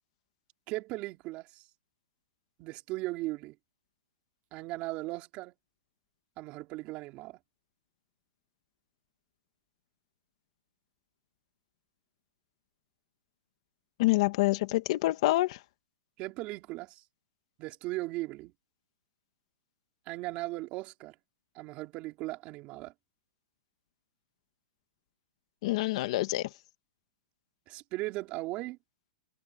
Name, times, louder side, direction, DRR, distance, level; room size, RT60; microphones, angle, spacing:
voice 1, 0.7-1.7 2.6-3.6 4.5-5.5 6.4-7.4 16.2-17.0 17.6-18.5 20.1-21.1 21.5-22.9 27.7-28.8, right 20 dB, 30° right, 4.2 m, -37 dB
voice 2, 14.0-15.6 25.6-26.5, left 18 dB, 45° left, 1.9 m, -27 dB
hypercardioid pair, 160°, 4 cm